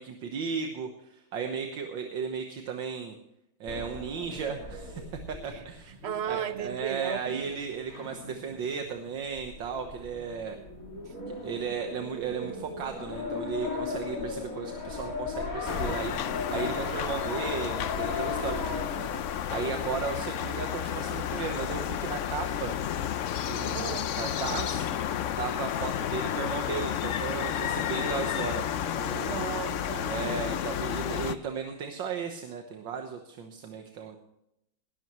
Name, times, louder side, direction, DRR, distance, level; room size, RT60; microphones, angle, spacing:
voice 1, 0.0-3.2 3.6-6.0 6.2-10.6 11.3-19.1 19.5-22.7 23.5-24.9 25.4-28.7 28.9-29.5 30.1-34.2, right 6 dB, 75° right, 4 dB, 1.9 m, -35 dB
sound 1, 3.7-20.1, left 3 dB, 45° left, 3.0 m, -37 dB
voice 2, 5.5-7.5 11.1-11.2 23.7-24.1 29.2-30.2 34.0-34.2, right 9 dB, 50° right, 11 dB, 0.8 m, -36 dB
sound 2, 15.6-31.3, left 10 dB, 80° left, 0.6 m, -32 dB
19.0 x 13.0 x 3.1 m, 0.80 s
omnidirectional pair, 2.1 m